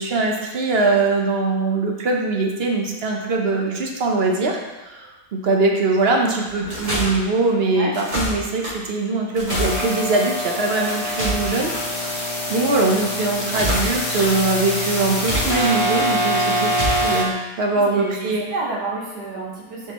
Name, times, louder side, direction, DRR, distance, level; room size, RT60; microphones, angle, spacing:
voice 1, 0.0-4.6 4.8-11.7 12.0-12.2 12.5-18.4, right 3 dB, 50° right, 0 dB, 0.9 m, -22 dB
sound 1, 6.5-7.1 7.9-8.7 9.3-9.9 10.8-11.8 13.3-14.3 15.1-16.0 16.6-17.1, equal, 30° right, 2.0 m, -26 dB
sound 2, 9.5-17.2, equal, 60° left, 1.9 m, -24 dB
voice 2, 17.7-19.9, right 3 dB, 80° right, -5 dB, 2.0 m, -30 dB
7.5 x 4.9 x 3.0 m, 1.1 s
omnidirectional pair, 1.7 m